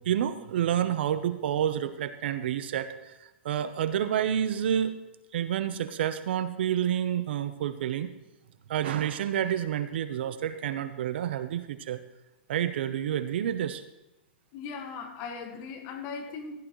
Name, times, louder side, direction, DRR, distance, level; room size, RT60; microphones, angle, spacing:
voice 1, 0.0-3.1 3.4-5.0 5.3-8.1 8.7-12.0 12.5-13.8, right 10 dB, 65° right, 11 dB, 0.9 m, -29 dB
voice 2, 14.5-16.5, left 5 dB, 35° left, 4 dB, 1.7 m, -38 dB
15.5 x 11.5 x 3.2 m, 1.0 s
hypercardioid pair, 150°, 6 cm